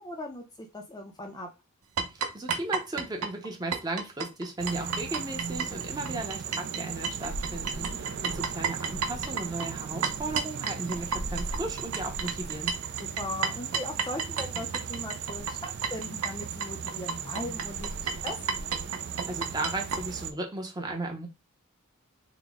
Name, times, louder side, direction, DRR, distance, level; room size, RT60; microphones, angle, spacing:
voice 1, 0.0-1.5 7.7-8.0 13.0-18.7, left 1 dB, 15° left, 2 dB, 0.4 m, -39 dB
sound 1, 2.0-6.8 7.0-20.0, right 5 dB, 85° right, 0.6 m, -32 dB
voice 2, 2.3-12.7 19.3-21.3, right 2 dB, 20° right, 2 dB, 0.7 m, -35 dB
sound 2, 4.6-20.3, right 8 dB, 50° right, 0.3 m, -37 dB
3.8 x 2.1 x 3.5 m, 0.27 s
head